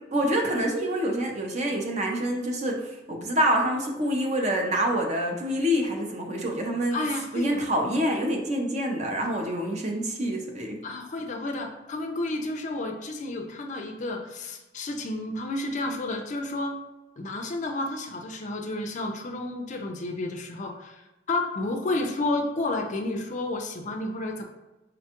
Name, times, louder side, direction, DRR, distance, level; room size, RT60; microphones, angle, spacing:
voice 1, 0.1-7.0 7.3-10.8, equal, 35° right, 1 dB, 0.6 m, -26 dB
voice 2, 6.9-7.6 10.8-16.8 17.2-24.4, left 2 dB, 40° left, 4 dB, 0.4 m, -31 dB
5.0 x 2.2 x 2.9 m, 1.0 s
head